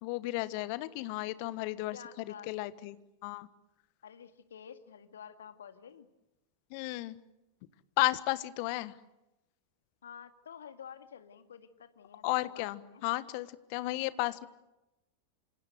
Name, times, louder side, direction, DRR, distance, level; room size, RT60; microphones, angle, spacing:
voice 1, 0.0-3.0 3.2-3.5 6.7-7.2 8.0-8.9 12.2-14.5, left 19 dB, 45° left, 15 dB, 1.4 m, -33 dB
voice 2, 1.9-2.5 4.0-6.1 10.0-13.0, left 8 dB, 65° left, 9 dB, 2.0 m, -50 dB
27.0 x 26.5 x 8.0 m, 0.95 s
figure-of-eight pair, 90°, 0 cm